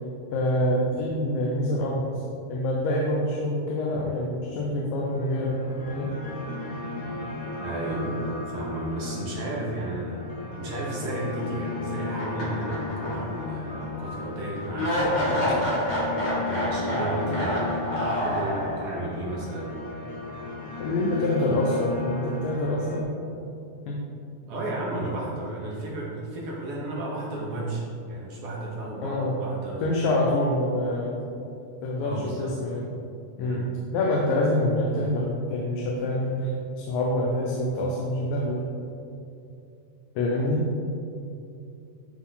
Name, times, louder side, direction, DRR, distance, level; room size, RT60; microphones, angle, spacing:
voice 1, 0.3-2.2 2.5-5.6 5.9-6.1 20.8-23.1 23.9-24.0 29.0-29.4 29.8-31.3 31.8-32.9 33.4-38.7 40.2-40.7, left 1 dB, 80° left, -2 dB, 2.4 m, -26 dB
sound 1, 5.0-23.0, left 3 dB, 60° left, 1.5 m, -35 dB
voice 2, 7.6-15.8 16.4-19.7 24.5-29.9 32.0-32.6 33.4-33.7, right 2 dB, 65° right, -4 dB, 1.6 m, -33 dB
sound 2, 12.2-13.4 13.8-13.9 14.8-19.1, equal, 40° left, 2.0 m, -28 dB
11.5 x 4.0 x 3.9 m, 2.7 s
omnidirectional pair, 4.1 m